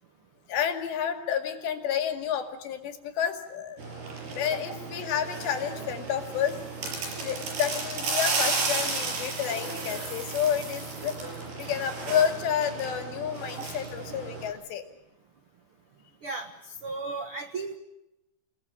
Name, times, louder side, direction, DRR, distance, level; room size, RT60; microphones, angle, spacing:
voice 1, 0.5-3.8 4.3-6.6 7.2-11.3 11.6-14.9, left 8 dB, 80° left, 6 dB, 4.4 m, -30 dB
sound 1, 3.8-14.5, right 3 dB, 65° right, 7.3 m, -33 dB
voice 2, 16.8-17.8, right 3 dB, 80° right, 6 dB, 1.2 m, -34 dB
29.5 x 19.0 x 8.6 m, 0.91 s
omnidirectional pair, 5.0 m